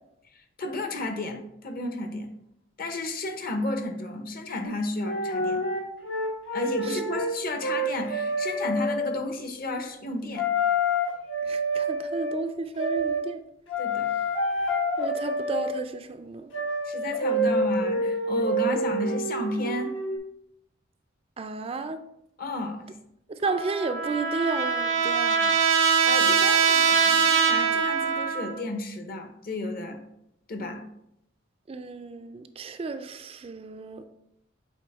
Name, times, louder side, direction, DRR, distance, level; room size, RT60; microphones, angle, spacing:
voice 1, 0.3-2.3 2.8-5.6 6.5-10.5 13.8-14.1 16.8-19.9 22.4-22.9 26.0-30.0 30.5-30.8, left 2 dB, 50° left, 6 dB, 0.8 m, -32 dB
sound 1, 4.6-4.7 5.0-7.3 7.6-9.2 10.4-12.4 12.8-13.2 13.7-15.8 16.5-20.2, equal, 75° left, 1.1 m, -27 dB
voice 2, 11.4-13.4 15.0-16.5 21.4-22.0 23.3-25.6 31.7-34.0, right 3 dB, 30° right, 9 dB, 0.3 m, -33 dB
Trumpet, 23.4-28.6, right 6 dB, 85° right, 0.8 m, -23 dB
8.3 x 3.5 x 3.4 m, 0.79 s
head